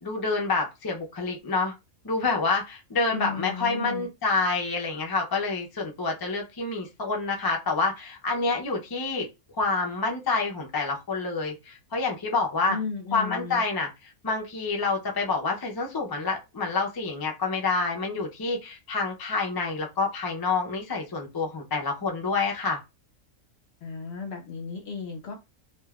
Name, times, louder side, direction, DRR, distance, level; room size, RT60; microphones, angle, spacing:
voice 1, 0.0-1.7 2.0-9.3 9.6-12.8 13.1-22.8, left 3 dB, 30° left, 1 dB, 0.4 m, -28 dB
voice 2, 3.1-4.1 12.7-13.6 23.8-25.4, left 5 dB, 55° left, 2 dB, 1.0 m, -34 dB
3.2 x 2.5 x 2.3 m, 0.24 s
omnidirectional pair, 1.4 m